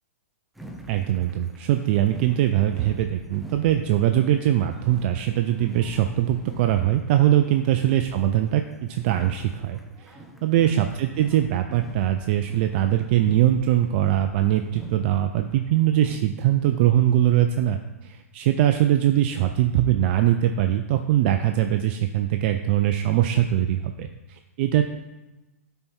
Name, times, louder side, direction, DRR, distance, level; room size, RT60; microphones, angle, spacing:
sound 1, 0.6-16.2, right 1 dB, ahead, 0.7 m, -44 dB
voice 1, 0.9-8.6 8.9-24.8, right 12 dB, 45° right, 7 dB, 0.4 m, -22 dB
8.5 x 4.5 x 4.4 m, 1.1 s
hypercardioid pair, 135°, 8 cm